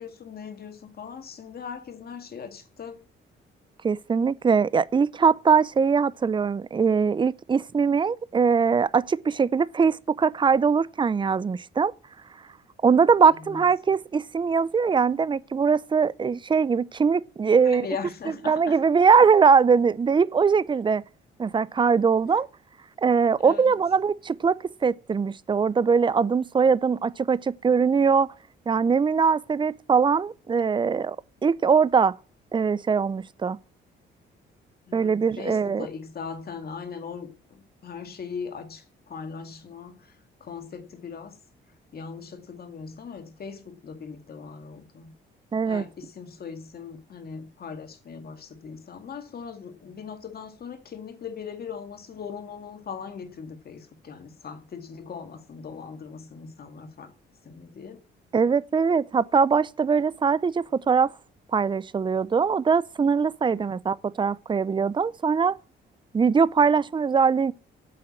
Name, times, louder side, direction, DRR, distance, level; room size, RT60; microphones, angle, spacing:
voice 1, 0.0-3.1 13.5-13.6 17.6-18.8 23.4-23.7 34.9-40.1 40.4-41.4 41.9-45.1 45.6-57.1 57.5-58.0 63.5-63.8, left 6 dB, 50° left, 2.2 m, -39 dB
voice 2, 3.8-11.9 12.8-17.9 18.5-21.0 21.4-22.5 23.0-28.3 28.7-31.2 31.4-32.1 32.5-33.6 34.9-35.9 45.5-45.8 58.3-61.1 61.5-65.6 66.1-67.5, right 5 dB, 25° right, 0.5 m, -22 dB
8.7 x 7.7 x 8.7 m
cardioid pair, 90°, 20 cm